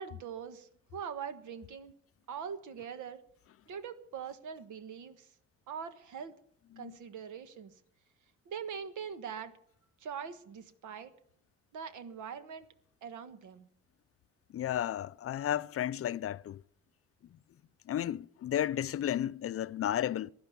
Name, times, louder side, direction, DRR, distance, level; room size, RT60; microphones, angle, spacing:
voice 1, 0.0-1.9 2.3-3.2 3.7-5.3 5.7-6.3 6.8-7.7 8.4-9.5 10.0-11.1 11.7-12.7 13.0-13.7, right 7 dB, 80° right, 1.5 m, -42 dB
voice 2, 14.5-16.6 17.9-20.3, left 11 dB, 50° left, 0.5 m, -33 dB
16.5 x 11.0 x 6.9 m
cardioid pair, 90°, 30 cm